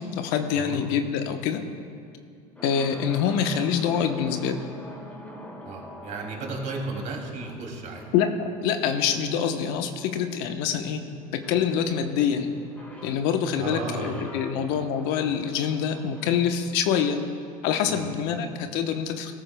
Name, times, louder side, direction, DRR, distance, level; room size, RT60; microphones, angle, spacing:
voice 1, 0.0-1.6 2.6-4.6 8.1-11.0 11.3-12.5 13.0-17.2 17.6-19.3, left 7 dB, 70° left, 6 dB, 1.0 m, -25 dB
sound 1, 2.5-18.3, left 1 dB, 10° left, 2.3 m, -45 dB
voice 2, 5.6-8.0 13.6-14.2 14.5-14.7 17.9-18.1, right 3 dB, 45° right, 0 dB, 2.6 m, -34 dB
17.5 x 13.5 x 2.2 m, 2.3 s
supercardioid pair, 105°, 18 cm